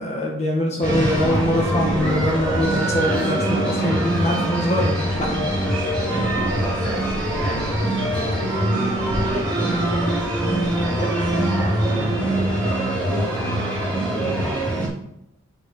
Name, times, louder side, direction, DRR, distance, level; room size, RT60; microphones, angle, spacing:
voice 1, 0.0-5.4, left 1 dB, 30° left, -2 dB, 1.8 m, -23 dB
sound 1, 0.8-14.9, right 1 dB, 5° left, 2.9 m, -23 dB
voice 2, 6.1-7.5 7.8-10.6 10.9-14.4, right 1 dB, 35° right, -3 dB, 2.4 m, -34 dB
6.7 x 6.3 x 5.6 m, 0.80 s
head